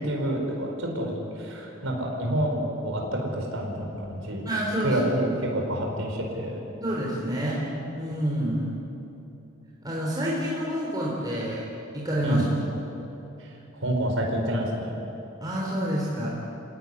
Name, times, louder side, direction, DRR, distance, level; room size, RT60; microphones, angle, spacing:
voice 1, 0.0-4.4 4.8-6.6 12.2-12.4 13.4-15.0, right 1 dB, 75° right, 0 dB, 4.9 m, -28 dB
voice 2, 4.4-5.0 6.8-7.6 7.9-8.7 9.8-11.6 11.9-12.4 15.4-16.3, equal, 20° right, -5 dB, 4.1 m, -28 dB
27.5 x 17.5 x 9.9 m, 3.0 s
head